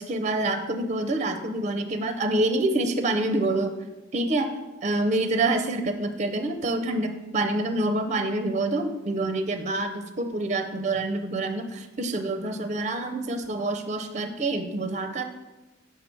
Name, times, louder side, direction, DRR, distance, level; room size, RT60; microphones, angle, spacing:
voice 1, 0.0-3.7 4.1-4.5 4.8-15.2, right 2 dB, 35° right, 7 dB, 0.5 m, -27 dB
6.9 x 4.6 x 4.5 m, 1.1 s
head